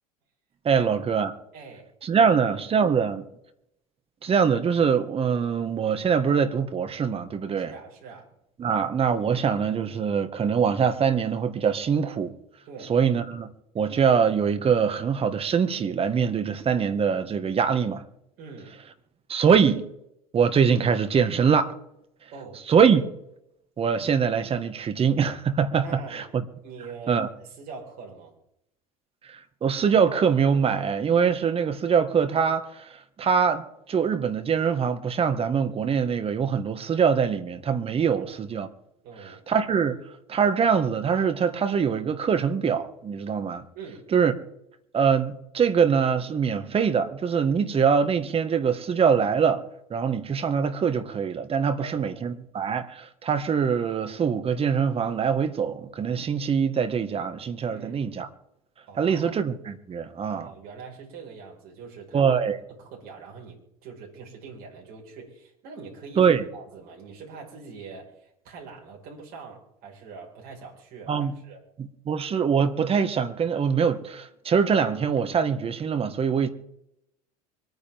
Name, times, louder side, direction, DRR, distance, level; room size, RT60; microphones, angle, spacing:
voice 1, 0.7-1.4 2.0-3.2 4.2-7.7 8.6-12.3 12.9-18.0 19.3-19.9 20.3-21.7 22.7-23.1 23.8-26.4 27.1-27.3 29.2-38.7 39.2-40.0 40.3-43.6 44.1-44.3 44.9-49.6 49.9-58.3 59.0-60.5 62.1-62.6 66.2-66.4 71.1-71.4 71.8-76.5, right 6 dB, 30° right, 1.7 m, -23 dB
voice 2, 1.5-1.9 2.2-2.4 7.6-8.3 12.7-12.9 18.4-18.8 22.3-22.6 25.8-26.3 26.6-28.3 38.1-38.4 39.0-39.4 43.7-44.1 51.8-52.2 57.7-58.1 58.9-59.4 60.3-62.3 62.7-71.6, right 5 dB, 55° right, 5.2 m, -43 dB
24.5 x 9.5 x 3.6 m
hypercardioid pair, 80°, 18 cm